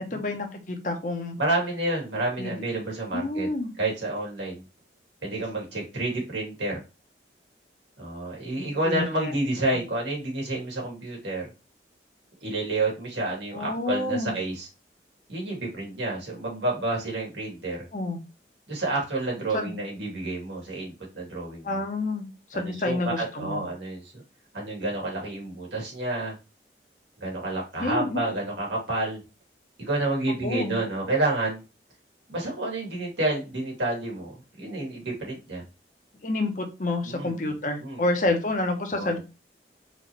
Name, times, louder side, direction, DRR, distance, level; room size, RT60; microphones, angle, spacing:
voice 1, 0.0-1.4 2.4-2.6 3.1-3.7 8.6-9.3 13.5-14.3 17.9-18.2 19.5-19.8 21.6-23.7 27.8-28.2 30.4-30.8 36.2-39.2, left 2 dB, 45° left, 4 dB, 0.8 m, -29 dB
voice 2, 1.4-3.5 3.8-4.6 5.2-6.8 8.0-11.5 12.4-14.7 15.3-17.8 18.7-21.8 22.5-24.2 24.5-26.3 27.2-29.2 29.9-31.6 32.3-35.6 37.0-38.3 38.9-39.2, right 2 dB, 85° right, -2 dB, 2.2 m, -29 dB
4.3 x 3.1 x 3.0 m, 0.30 s
head